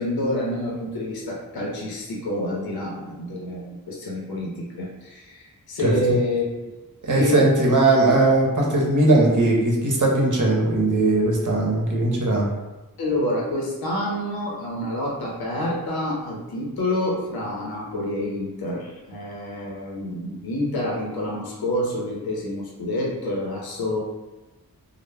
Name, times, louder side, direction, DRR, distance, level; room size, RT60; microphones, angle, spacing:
voice 1, 0.0-6.7 7.1-7.5 13.0-24.0, left 1 dB, 85° left, -3 dB, 0.6 m, -28 dB
voice 2, 7.1-12.5, right 2 dB, 60° right, -2 dB, 0.8 m, -19 dB
2.1 x 2.0 x 3.3 m, 1.1 s
cardioid pair, 45°, 36 cm